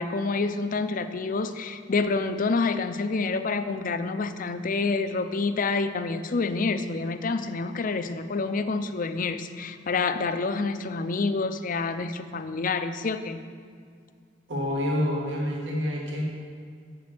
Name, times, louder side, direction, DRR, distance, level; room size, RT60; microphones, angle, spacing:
voice 1, 0.0-13.4, left 4 dB, 45° left, 10 dB, 0.5 m, -28 dB
voice 2, 14.5-16.2, left 1 dB, 80° right, -3 dB, 1.7 m, -27 dB
7.6 x 7.3 x 6.0 m, 2.2 s
head